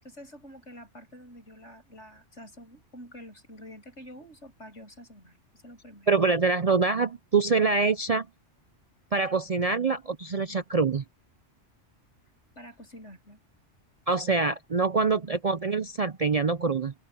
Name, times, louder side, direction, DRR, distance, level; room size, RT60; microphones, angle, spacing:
voice 1, 0.0-6.1 12.6-13.4, equal, 70° left, 8.2 m, -48 dB
voice 2, 6.1-8.3 9.1-11.0 14.1-16.9, right 4 dB, 40° right, 0.6 m, -25 dB
omnidirectional pair, 1.2 m